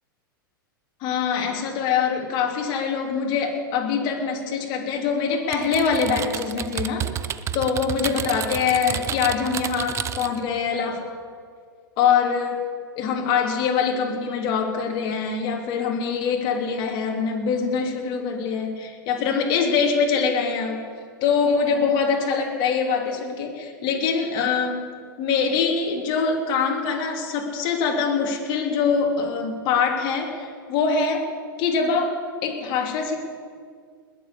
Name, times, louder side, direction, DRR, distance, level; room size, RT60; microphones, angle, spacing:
voice 1, 1.0-7.1 7.5-11.1 12.0-12.6 13.0-20.8 21.2-24.8 25.2-31.2 31.6-32.1 32.4-33.2, left 5 dB, 45° left, 1 dB, 3.1 m, -24 dB
Typing, 5.5-10.4, right 9 dB, 25° right, 0.6 m, -30 dB
20.5 x 7.6 x 8.4 m, 2.1 s
hypercardioid pair, 110°, 12 cm